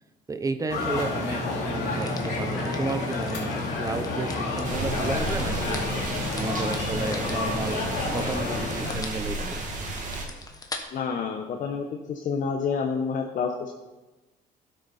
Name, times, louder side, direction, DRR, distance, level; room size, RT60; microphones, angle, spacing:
voice 1, 0.3-5.9 6.3-7.8 8.1-9.7, right 3 dB, 20° right, 10 dB, 0.7 m, -32 dB
sound 1, 0.7-8.9, left 3 dB, 75° left, 2.9 m, -29 dB
sound 2, 1.9-10.8, left 3 dB, 20° left, 1.2 m, -43 dB
sound 3, 4.6-10.2, right 2 dB, 50° right, 2.1 m, -33 dB
voice 2, 10.9-13.8, left 5 dB, 50° left, 4 dB, 0.9 m, -29 dB
12.0 x 6.6 x 4.2 m, 1.1 s
cardioid pair, 110°, 17 cm